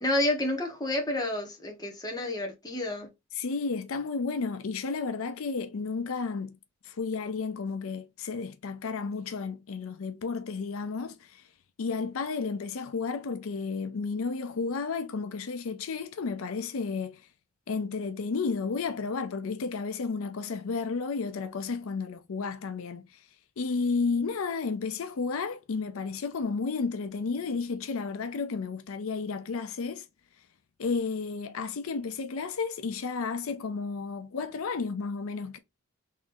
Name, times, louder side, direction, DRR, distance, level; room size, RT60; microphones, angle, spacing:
voice 1, 0.0-3.1, left 1 dB, 20° left, 1.1 m, -30 dB
voice 2, 3.3-6.6 6.8-11.4 11.8-17.2 17.7-23.2 23.6-30.1 30.8-35.6, left 4 dB, 75° left, 0.5 m, -32 dB
3.6 x 3.1 x 2.6 m
head